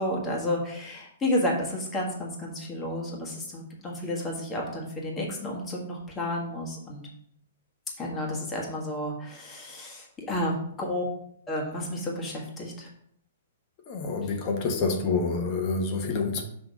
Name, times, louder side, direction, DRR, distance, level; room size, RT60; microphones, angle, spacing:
voice 1, 0.0-7.0 8.0-11.1 11.5-12.9, left 1 dB, 15° left, 1.6 m, -31 dB
voice 2, 13.9-16.4, left 4 dB, 35° left, 1.2 m, -27 dB
6.0 x 3.3 x 5.2 m
hypercardioid pair, 145°, 0 cm